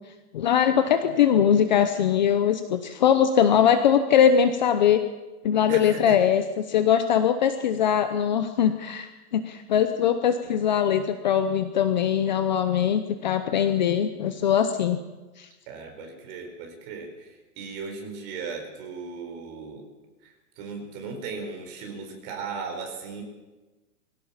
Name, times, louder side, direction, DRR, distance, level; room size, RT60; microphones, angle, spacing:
voice 1, 0.3-5.0 5.4-6.4 6.7-15.0 15.4-15.5, left 8 dB, 30° left, 8 dB, 0.8 m, -21 dB
voice 2, 5.7-6.2 15.7-19.9 20.2-23.2, right 4 dB, 25° right, 3 dB, 4.6 m, -37 dB
23.5 x 16.5 x 7.3 m, 1.2 s
hypercardioid pair, 175°, 46 cm